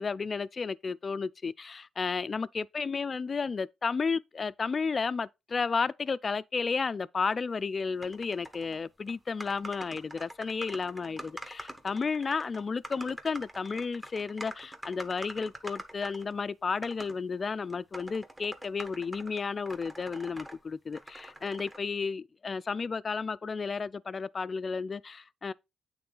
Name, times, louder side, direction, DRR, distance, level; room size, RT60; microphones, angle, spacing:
voice 1, 0.0-25.5, left 5 dB, 35° left, 0.4 m, -32 dB
sound 1, 8.0-8.8 9.1-9.2 9.4-16.4 16.8-17.2 17.7-20.6 20.9-21.8, right 1 dB, 15° right, 1.3 m, -45 dB
8.6 x 3.7 x 3.9 m
cardioid pair, 90°, 0 cm